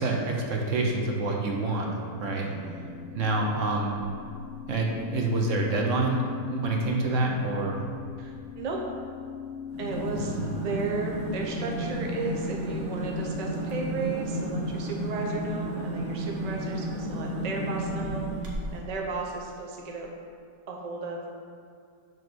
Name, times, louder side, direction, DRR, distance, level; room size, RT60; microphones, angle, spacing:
voice 1, 0.0-2.5 3.1-3.9 4.7-6.2 6.5-7.8 10.2-10.5, right 2 dB, 55° right, 0 dB, 1.0 m, -27 dB
sound 1, 1.9-12.0, left 9 dB, 75° left, 0.7 m, -42 dB
voice 2, 2.4-3.0 8.2-8.8 9.8-18.3 18.7-20.1 20.7-21.2, right 4 dB, 70° right, -1 dB, 0.3 m, -34 dB
sound 2, 9.7-18.9, right 1 dB, 90° right, 1.7 m, -32 dB
7.1 x 3.1 x 6.1 m, 2.3 s
omnidirectional pair, 1.8 m